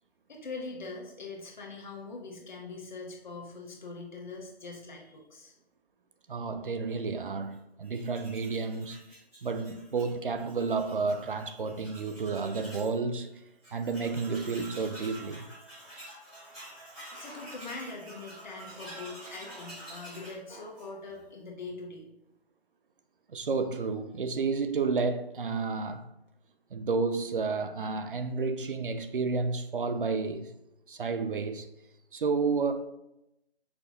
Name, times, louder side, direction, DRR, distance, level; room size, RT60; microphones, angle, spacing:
voice 1, 0.3-5.5 16.3-16.5 17.2-22.1, left 3 dB, 45° left, 1.1 m, -42 dB
voice 2, 6.3-9.0 9.4-13.4 13.7-15.5 23.3-26.1 26.7-30.5 30.9-31.7 32.1-32.7, right 4 dB, 55° right, 0.5 m, -31 dB
Tools, 7.8-12.9 13.3-13.4 13.6-21.2, right 1 dB, ahead, 0.6 m, -48 dB
5.7 x 2.3 x 4.0 m
figure-of-eight pair, 155°, 32 cm